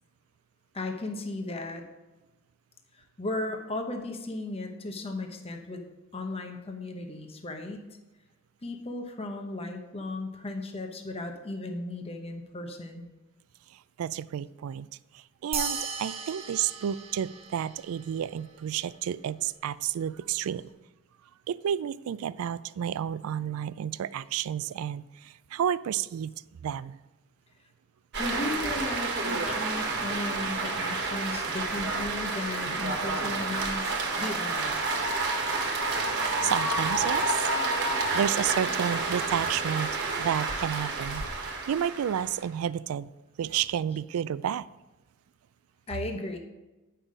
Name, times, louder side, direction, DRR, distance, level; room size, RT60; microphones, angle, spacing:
voice 1, 0.7-1.8 2.9-5.8 6.1-7.9 8.6-13.1 28.2-34.8 45.9-46.4, left 2 dB, 25° left, 4 dB, 0.8 m, -36 dB
voice 2, 14.0-14.9 15.4-20.7 21.5-26.3 26.6-27.0 36.4-37.4 38.1-39.9 40.2-43.1 43.4-44.7, right 9 dB, 70° right, 19 dB, 0.3 m, -31 dB
sound 1, 15.5-18.3, right 5 dB, 25° right, 0.8 m, -36 dB
sound 2, 28.1-42.4, right 3 dB, 50° right, 1.4 m, -29 dB
9.0 x 5.7 x 5.0 m, 1.1 s
head